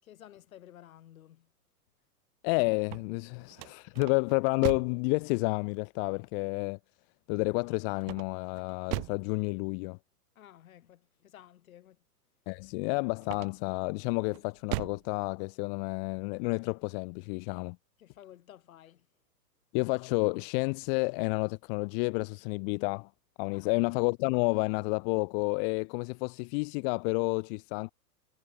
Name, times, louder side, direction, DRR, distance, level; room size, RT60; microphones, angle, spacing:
voice 1, 0.0-1.5 10.3-12.0 18.0-19.1 23.5-23.7, left 11 dB, 60° left, 6.4 m, -54 dB
voice 2, 2.4-6.8 7.3-10.0 12.5-17.8 19.7-23.1 23.4-27.9, left 39 dB, 35° left, 1.3 m, -30 dB
sound 1, 2.7-5.1 8.0-9.3 13.2-13.8 14.3-15.1, right 39 dB, 35° right, 1.5 m, -38 dB
figure-of-eight pair, 110°, 47 cm